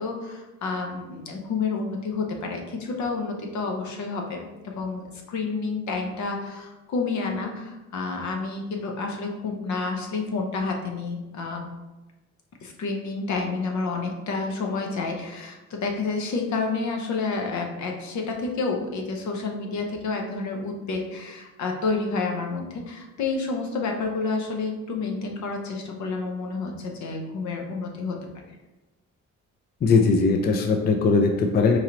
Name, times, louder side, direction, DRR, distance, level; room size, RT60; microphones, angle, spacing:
voice 1, 0.0-11.7 12.6-28.2, left 4 dB, 70° left, 2 dB, 0.8 m, -29 dB
voice 2, 29.8-31.8, left 4 dB, 35° left, 3 dB, 0.4 m, -20 dB
3.8 x 3.0 x 2.9 m, 1.1 s
cardioid pair, 90°, 30 cm